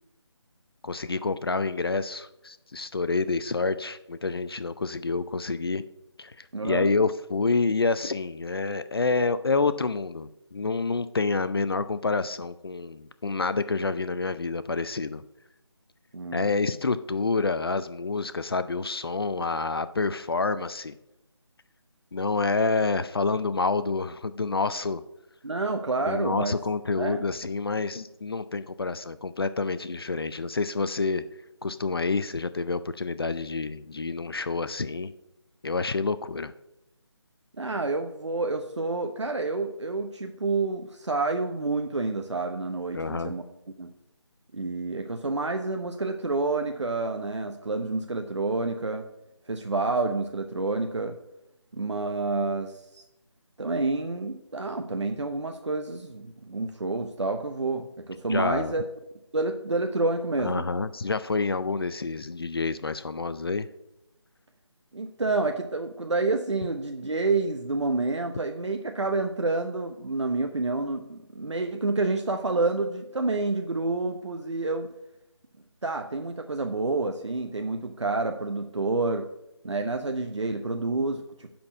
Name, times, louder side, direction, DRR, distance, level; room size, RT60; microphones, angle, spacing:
voice 1, 0.8-5.8 6.2-15.2 16.3-20.9 22.1-25.0 26.1-31.2 31.6-35.1 35.6-36.5 42.9-43.3 58.3-58.7 60.4-63.7, left 4 dB, 55° left, 13 dB, 0.5 m, -28 dB
voice 2, 6.5-6.9 16.1-16.5 25.4-26.5 27.0-27.2 37.6-43.4 43.8-43.9 44.5-49.0 49.5-51.2 51.7-53.0 53.6-58.8 59.3-60.7 64.9-74.9 75.8-79.3 79.6-81.6, right 3 dB, 75° right, 5 dB, 0.9 m, -28 dB
10.5 x 4.4 x 7.0 m, 0.89 s
figure-of-eight pair, 160°, 15 cm